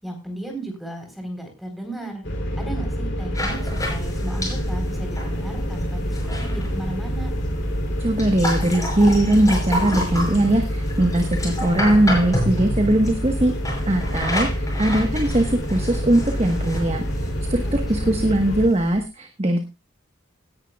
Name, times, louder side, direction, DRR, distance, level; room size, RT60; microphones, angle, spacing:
voice 1, 0.0-2.2 2.6-7.3 17.6-17.7 18.0-18.2, right 1 dB, ahead, 3 dB, 4.0 m, -35 dB
sound 1, 2.2-18.7, equal, 65° left, 3.3 m, -27 dB
sound 2, 3.3-19.0, left 1 dB, 20° left, 5.6 m, -31 dB
voice 2, 8.0-13.5 13.9-14.5 14.8-19.6, right 1 dB, 30° right, 5 dB, 1.3 m, -20 dB
18.0 x 10.5 x 2.4 m, 0.25 s
head